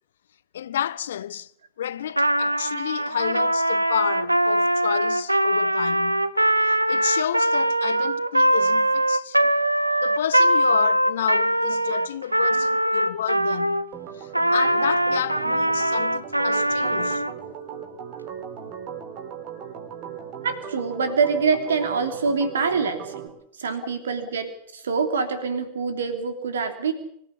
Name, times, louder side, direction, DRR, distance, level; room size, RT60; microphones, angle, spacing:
voice 1, 0.5-1.5 1.8-6.3 6.6-9.4 10.0-13.9 14.2-17.2, left 10 dB, 60° left, 0.8 m, -30 dB
Trumpet, 2.1-13.9 14.3-17.3, right 1 dB, 85° right, 1.0 m, -22 dB
Organ, 13.9-23.3, right 8 dB, 40° right, 3.7 m, -38 dB
voice 2, 20.4-23.3 23.6-26.9, right 5 dB, 65° right, 3.1 m, -25 dB
25.0 x 14.5 x 8.4 m
figure-of-eight pair, 90°, 0 cm